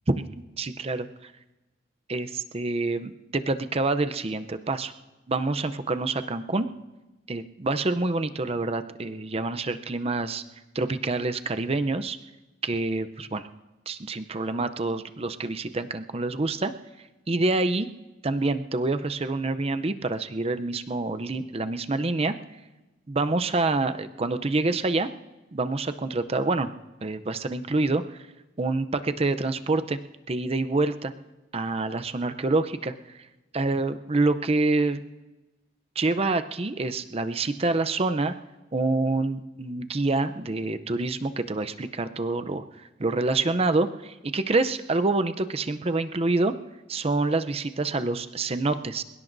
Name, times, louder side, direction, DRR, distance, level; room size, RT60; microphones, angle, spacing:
voice 1, 0.6-1.3 2.1-4.9 5.3-6.7 7.3-10.4 10.7-12.2 12.6-13.5 13.9-16.7 17.3-17.9 18.2-22.4 23.1-25.1 25.5-26.7 27.0-28.0 28.6-30.0 30.3-31.1 31.5-32.9 33.5-35.0 36.0-38.3 38.7-42.6 43.0-46.6 46.9-49.0, right 2 dB, 30° right, 10 dB, 0.6 m, -27 dB
26.5 x 17.0 x 2.6 m, 1.1 s
head